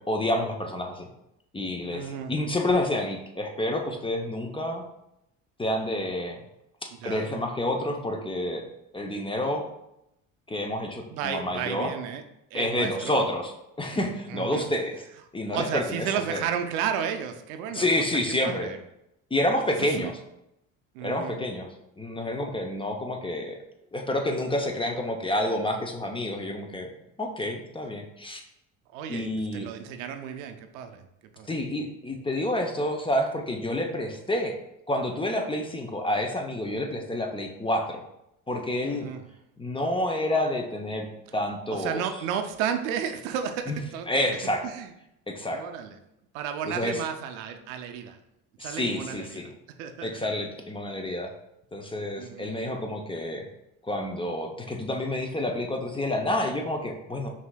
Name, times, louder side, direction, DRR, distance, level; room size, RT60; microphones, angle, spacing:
voice 1, 0.1-1.1 1.5-4.8 5.6-6.4 6.8-8.6 8.9-9.6 10.5-11.9 12.5-13.5 13.8-15.0 15.3-16.4 17.7-18.7 19.3-20.1 21.0-21.7 22.0-23.6 23.9-26.9 27.2-28.4 29.1-29.7 31.5-34.6 34.9-38.0 38.5-39.1 39.6-41.1 41.3-42.0 43.7-43.8 44.1-44.6 45.3-45.6 46.7-47.0 48.6-49.5 50.0-51.3 51.7-53.4 53.8-57.3, left 1 dB, 15° left, 3 dB, 0.6 m, -29 dB
voice 2, 1.9-2.3 7.0-7.3 11.1-12.2 12.5-13.3 14.3-14.7 15.5-18.8 19.7-20.1 20.9-21.4 28.9-31.1 31.3-31.5 38.8-39.3 41.7-44.4 44.6-44.9 45.5-46.0 46.3-48.2 48.6-49.5 49.8-50.3 52.2-52.6, right 8 dB, 75° right, 7 dB, 0.5 m, -33 dB
5.5 x 2.7 x 2.2 m, 0.84 s
hypercardioid pair, 65°, 40 cm